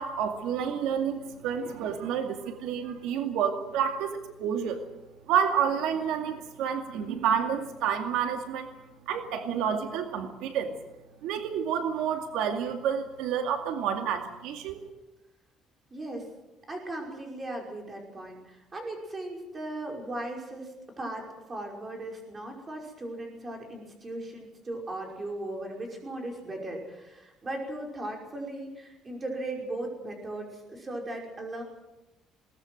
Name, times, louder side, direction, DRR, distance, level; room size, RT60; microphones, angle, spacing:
voice 1, 0.0-4.8 5.3-8.7 9.1-10.7 11.2-14.8, right 8 dB, 85° right, 5 dB, 2.3 m, -29 dB
voice 2, 15.9-16.3 16.7-31.6, right 1 dB, 20° right, 1 dB, 5.4 m, -37 dB
21.5 x 19.0 x 7.8 m, 0.99 s
cardioid pair, 150°, 0 cm